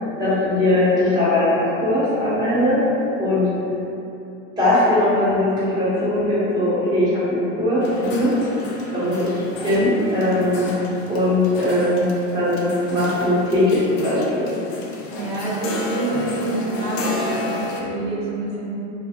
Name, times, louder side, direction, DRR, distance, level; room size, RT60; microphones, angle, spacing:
voice 1, 0.2-2.8 3.2-3.5 4.6-8.4 8.9-9.3 9.6-10.8 11.1-14.5, left 1 dB, 10° right, -12 dB, 1.0 m, -20 dB
sound 1, 7.8-17.8, left 2 dB, 80° left, 0.5 m, -32 dB
voice 2, 15.1-18.7, right 1 dB, 85° right, -6 dB, 0.9 m, -26 dB
2.3 x 2.2 x 2.7 m, 2.8 s
supercardioid pair, 110°, 38 cm